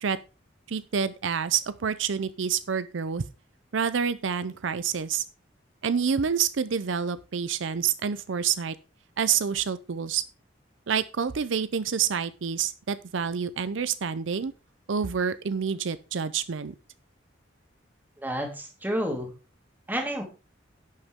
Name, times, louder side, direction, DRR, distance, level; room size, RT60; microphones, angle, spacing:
voice 1, 0.7-3.2 3.7-5.2 5.8-8.8 9.2-10.2 10.9-14.5 14.9-16.7, right 7 dB, 80° right, 14 dB, 0.5 m, -28 dB
voice 2, 18.2-19.3 19.9-20.2, equal, 10° right, 2 dB, 2.4 m, -30 dB
11.5 x 8.1 x 3.6 m, 0.32 s
head